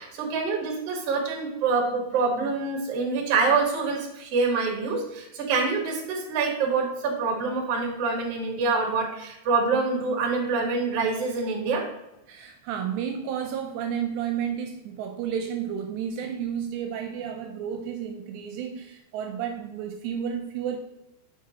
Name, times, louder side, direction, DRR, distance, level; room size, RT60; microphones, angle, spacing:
voice 1, 0.0-11.8, right 4 dB, 55° right, -2 dB, 1.7 m, -26 dB
voice 2, 12.3-20.8, right 8 dB, 80° right, 4 dB, 2.7 m, -31 dB
7.8 x 5.7 x 3.0 m, 0.93 s
omnidirectional pair, 5.3 m